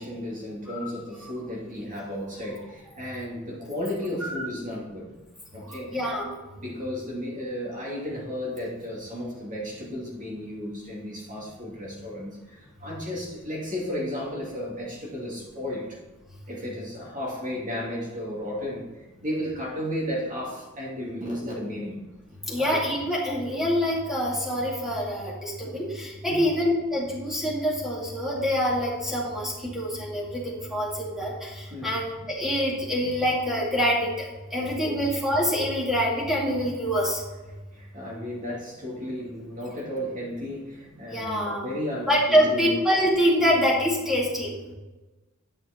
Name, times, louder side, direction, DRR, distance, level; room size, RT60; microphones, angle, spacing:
voice 1, 0.0-5.1 5.5-6.0 6.5-16.0 16.5-22.0 22.6-22.8 25.6-25.8 26.3-26.4 31.7-31.9 34.8-35.0 37.7-42.7, left 1 dB, 40° right, -4 dB, 2.7 m, -34 dB
voice 2, 5.7-6.3 22.5-34.1 34.5-37.2 41.1-41.7 42.1-44.5, equal, ahead, -5 dB, 2.5 m, -25 dB
9.0 x 6.3 x 4.4 m, 1.1 s
head